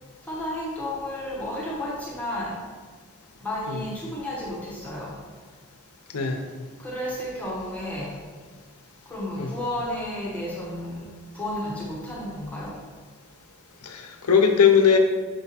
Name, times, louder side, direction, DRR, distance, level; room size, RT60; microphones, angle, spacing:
voice 1, 0.3-2.6 3.4-5.1 6.8-8.1 9.1-11.1 11.3-12.8, left 1 dB, 5° left, -5 dB, 1.0 m, -32 dB
voice 2, 13.8-15.0, left 7 dB, 85° left, 5 dB, 0.7 m, -19 dB
6.5 x 3.5 x 4.2 m, 1.5 s
head